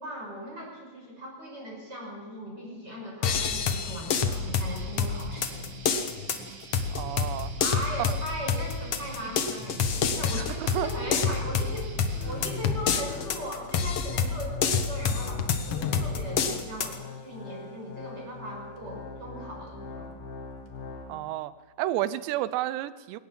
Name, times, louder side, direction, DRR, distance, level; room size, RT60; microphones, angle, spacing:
voice 1, 0.0-5.7 7.6-11.9 12.2-20.1, equal, 25° right, -1 dB, 6.2 m, -39 dB
sound 1, 3.2-17.0, left 6 dB, 80° left, 1.3 m, -28 dB
Guitar, 4.3-12.3, right 3 dB, 40° right, 2.6 m, -46 dB
voice 2, 6.9-7.5 8.1-8.2 10.3-10.9 21.1-23.2, right 14 dB, 85° right, 16 dB, 3.0 m, -31 dB
sound 2, 11.2-21.2, left 5 dB, 60° left, 3.6 m, -43 dB
21.5 x 19.0 x 7.6 m, 1.4 s
omnidirectional pair, 5.0 m